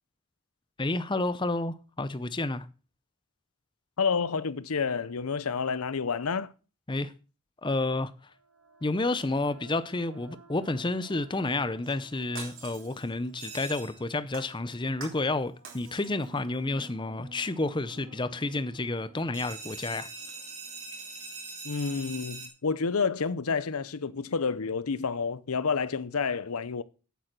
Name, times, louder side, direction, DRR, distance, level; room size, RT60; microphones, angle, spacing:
voice 1, 0.8-2.7 6.9-7.1 7.6-8.1 8.8-20.1, left 2 dB, 20° left, 0.6 m, -30 dB
voice 2, 4.0-6.5 21.6-26.8, left 5 dB, 80° left, 0.7 m, -29 dB
sound 1, 8.2-21.9, right 3 dB, 85° right, 4.4 m, -55 dB
Shatter, 11.8-13.9 14.3-15.3 15.6-16.4 16.8-16.9, right 5 dB, 55° right, 3.8 m, -46 dB
sound 2, 13.4-14.2 19.3-22.5, right 3 dB, 35° right, 3.2 m, -42 dB
9.2 x 8.8 x 6.0 m
head